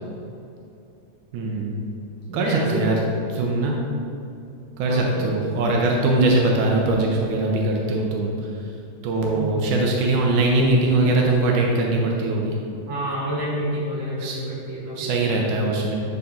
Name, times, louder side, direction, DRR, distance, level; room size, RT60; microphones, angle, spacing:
voice 1, 1.3-1.9 2.3-3.0 3.4-3.8 4.8-8.3 9.0-12.5 14.2-14.4 15.0-16.0, right 2 dB, 90° right, -1 dB, 2.3 m, -21 dB
voice 2, 2.3-3.0 4.9-5.3 9.3-9.6 12.9-15.4, right 1 dB, 65° right, -7 dB, 3.1 m, -29 dB
11.5 x 4.1 x 3.8 m, 2.6 s
omnidirectional pair, 3.3 m